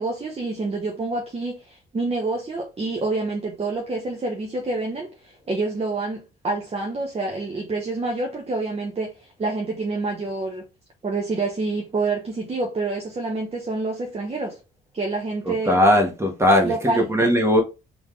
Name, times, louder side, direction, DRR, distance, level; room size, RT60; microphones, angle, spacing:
voice 1, 0.0-10.7 11.0-14.6 14.9-15.8 16.6-17.1, right 3 dB, 30° right, 1.0 m, -27 dB
voice 2, 15.4-17.6, left 1 dB, 15° right, 1.5 m, -19 dB
3.8 x 3.4 x 3.3 m
cardioid pair, 90°, 20 cm